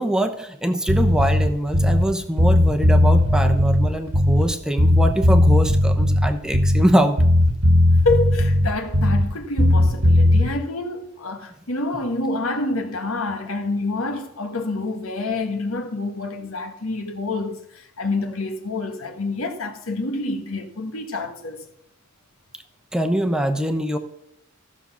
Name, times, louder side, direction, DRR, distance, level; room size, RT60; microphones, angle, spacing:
voice 1, 0.0-7.2 22.9-24.0, equal, 5° right, 0.9 m, -23 dB
Bass guitar, 0.9-2.1 2.4-4.5 4.8-6.9 7.2-9.3 9.6-10.5, left 1 dB, 80° right, 1.4 m, -17 dB
voice 2, 8.0-21.6, left 2 dB, 75° left, 1.5 m, -27 dB
13.5 x 6.3 x 7.0 m
head